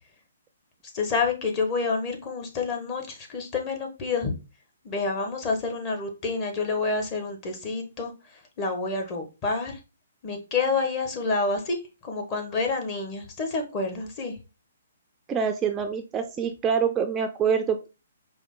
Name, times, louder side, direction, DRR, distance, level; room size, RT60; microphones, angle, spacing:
voice 1, 0.9-4.3 4.8-9.8 10.2-14.4, left 4 dB, 30° left, 2 dB, 1.1 m, -28 dB
voice 2, 15.3-17.9, right 7 dB, 20° right, 6 dB, 0.4 m, -25 dB
4.9 x 2.1 x 3.6 m, 0.29 s
hypercardioid pair, 140°, 0 cm